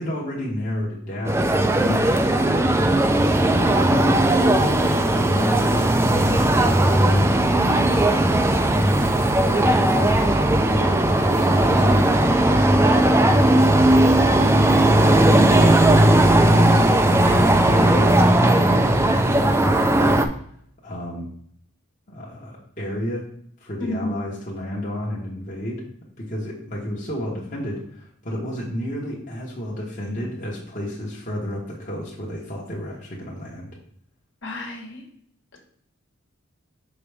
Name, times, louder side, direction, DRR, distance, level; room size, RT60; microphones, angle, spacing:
voice 1, 0.0-2.2 2.7-3.1 3.5-7.6 8.2-8.9 9.2-13.0 13.2-13.6 13.9-15.5 15.9-20.2 20.8-21.3 22.1-23.3 23.6-25.8 26.2-33.8, left 1 dB, 35° left, -4 dB, 1.2 m, -31 dB
sound 1, 1.3-20.3, right 1 dB, 10° right, 0.4 m, -17 dB
voice 2, 23.8-24.2 34.4-35.0 35.5-35.6, left 1 dB, 60° left, 0 dB, 1.5 m, -30 dB
6.1 x 5.0 x 3.4 m, 0.64 s
head